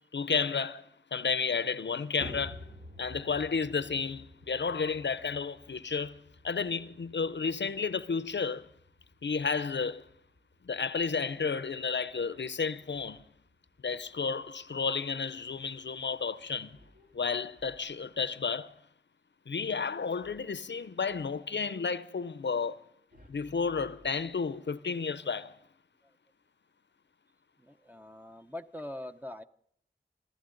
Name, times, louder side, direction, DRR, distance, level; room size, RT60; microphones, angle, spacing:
voice 1, 0.1-2.6 3.0-8.7 9.2-10.1 10.6-13.3 13.8-16.8 17.1-18.7 19.5-22.8 23.3-25.6, left 5 dB, 70° left, 0.6 m, -32 dB
sound 1, 2.2-18.6, left 1 dB, 70° right, 8.0 m, -53 dB
sound 2, 12.0-13.5 16.7-18.2 20.2-21.4 23.1-24.8, equal, 50° right, 3.1 m, -61 dB
voice 2, 27.6-29.4, left 1 dB, 10° right, 0.7 m, -43 dB
25.0 x 14.5 x 3.9 m
wide cardioid pair, 60°, 19 cm